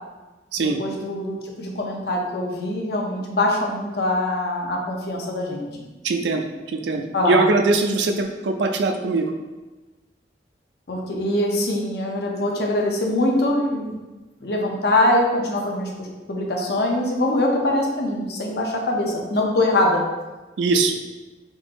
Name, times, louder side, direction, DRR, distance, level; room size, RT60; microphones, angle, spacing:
voice 1, 0.6-5.7 7.1-7.4 10.9-14.0 14.4-15.9 16.3-20.0, left 1 dB, 60° left, 0 dB, 0.6 m, -23 dB
voice 2, 6.0-9.3 20.6-21.0, right 3 dB, 75° right, 5 dB, 0.4 m, -21 dB
3.7 x 2.5 x 2.9 m, 1.2 s
head